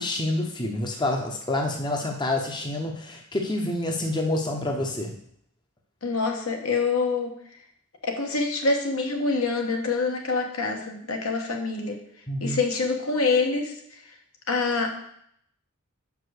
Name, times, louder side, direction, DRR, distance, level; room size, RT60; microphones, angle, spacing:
voice 1, 0.0-5.1 12.3-12.6, left 1 dB, 20° left, 2 dB, 0.7 m, -28 dB
voice 2, 6.0-7.3 8.0-12.0 12.4-13.8 14.5-14.9, left 4 dB, 75° left, 2 dB, 1.2 m, -25 dB
6.0 x 4.7 x 6.4 m, 0.70 s
head